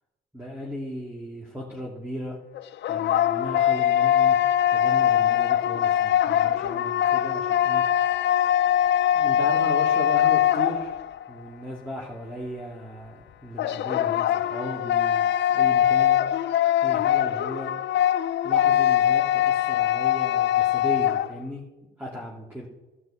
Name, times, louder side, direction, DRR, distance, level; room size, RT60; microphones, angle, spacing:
voice 1, 0.3-2.4 2.9-4.4 4.7-7.8 9.1-10.9 11.3-16.2 16.8-17.7 18.4-21.6 22.0-22.7, equal, 10° right, -4 dB, 2.3 m, -36 dB
sound 1, 2.6-11.3 13.6-21.3, left 11 dB, 65° left, 0.5 m, -22 dB
16.0 x 6.0 x 4.3 m, 1.1 s
cardioid pair, 90°, 20 cm